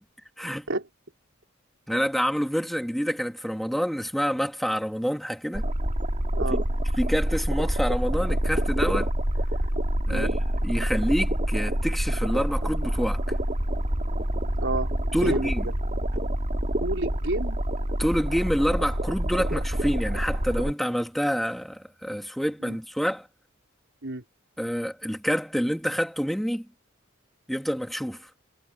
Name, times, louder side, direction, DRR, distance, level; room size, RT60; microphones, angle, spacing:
voice 1, 0.4-0.7 1.9-5.7 7.0-9.1 10.1-10.4 10.6-13.2 15.1-15.7 18.0-23.3 24.6-26.7 27.5-28.3, equal, ahead, 3.0 m, -27 dB
sound 1, 5.5-20.7, right 1 dB, 40° right, 3.2 m, -27 dB
voice 2, 6.3-6.7 10.1-10.3 14.6-15.5 16.8-17.6 22.6-22.8 24.0-24.2, right 2 dB, 65° right, 4.8 m, -30 dB
head